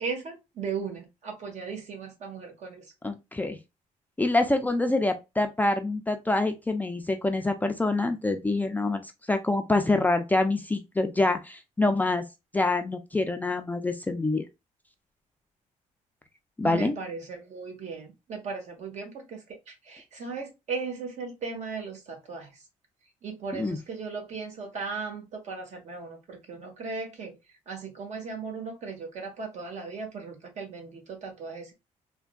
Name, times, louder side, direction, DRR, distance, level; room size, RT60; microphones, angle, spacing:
voice 1, 0.0-2.8 16.6-19.4 19.7-22.5 23.2-27.4 27.7-31.7, right 5 dB, 60° right, 1.2 m, -37 dB
voice 2, 3.0-3.6 4.2-9.0 9.3-12.2 12.5-14.4 16.6-16.9 23.5-23.8, left 2 dB, 10° left, 0.4 m, -26 dB
3.4 x 2.2 x 2.3 m
cardioid pair, 100°, 14 cm